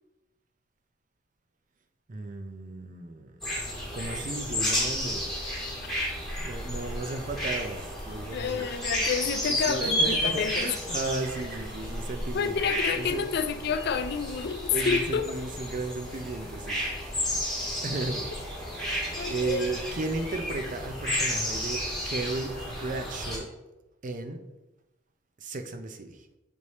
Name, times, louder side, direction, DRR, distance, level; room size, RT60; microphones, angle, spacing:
voice 1, 2.1-3.4 3.8-5.3 6.3-8.8 9.5-13.5 14.5-16.9 17.8-18.3 18.7-18.9 19.3-23.5 24.0-24.4 25.4-26.3, right 2 dB, 45° right, 0.5 m, -35 dB
sound 1, 3.4-23.4, equal, ahead, 1.8 m, -32 dB
voice 2, 8.3-10.8 12.3-15.2 19.2-19.7, left 6 dB, 60° left, 0.4 m, -29 dB
7.0 x 3.3 x 4.1 m
head